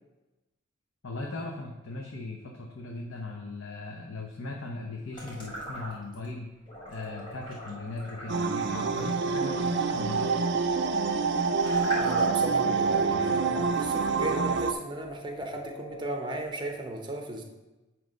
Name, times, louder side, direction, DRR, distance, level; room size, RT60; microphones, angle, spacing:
voice 1, 1.0-6.5 6.9-10.3, left 2 dB, 75° left, 0 dB, 0.8 m, -38 dB
sound 1, 5.1-6.3 6.7-12.6, equal, 25° left, 2.1 m, -41 dB
sound 2, 6.7-16.7, left 1 dB, 50° left, 1.3 m, -48 dB
sound 3, 8.3-14.7, right 4 dB, 55° right, 0.4 m, -26 dB
voice 2, 12.0-17.4, right 2 dB, 20° right, 3 dB, 0.8 m, -35 dB
9.6 x 3.2 x 5.2 m, 1.1 s
head